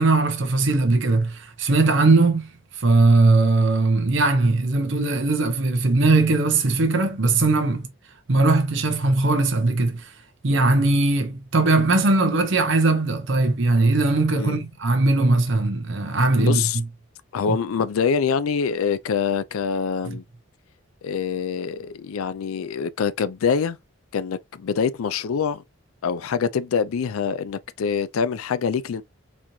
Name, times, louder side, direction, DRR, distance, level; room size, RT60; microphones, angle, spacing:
voice 1, 0.0-2.5 2.8-7.9 8.3-10.1 10.4-16.6 20.1-20.2, right 3 dB, 60° right, 0.7 m, -19 dB
voice 2, 16.4-16.8 17.3-20.2 21.0-23.8 24.1-25.6 26.0-29.0, left 6 dB, 85° left, 0.4 m, -25 dB
4.1 x 3.0 x 2.7 m
head